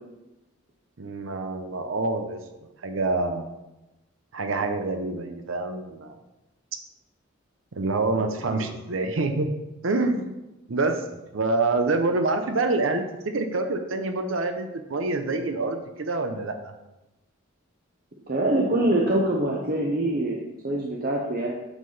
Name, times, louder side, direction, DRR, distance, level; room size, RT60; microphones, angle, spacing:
voice 1, 1.0-2.4 2.8-3.5 4.3-6.2 7.7-9.5 9.8-10.4 10.7-11.0 11.3-16.7, right 3 dB, 75° right, 6 dB, 0.7 m, -26 dB
voice 2, 18.3-21.5, right 1 dB, 45° right, -2 dB, 0.9 m, -25 dB
7.9 x 5.9 x 4.0 m, 0.99 s
head